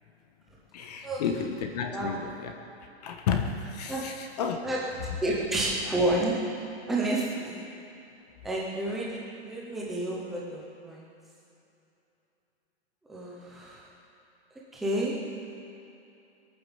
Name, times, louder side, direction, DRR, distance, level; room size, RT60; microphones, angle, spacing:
voice 1, 0.7-2.5 3.0-4.6, left 6 dB, 35° left, 4 dB, 1.2 m, -31 dB
voice 2, 4.6-6.4 6.9-7.6 8.4-11.1 13.1-13.9 14.7-15.2, right 1 dB, ahead, -5 dB, 0.4 m, -30 dB
21.0 x 8.9 x 7.1 m, 2.8 s
hypercardioid pair, 170°, 33 cm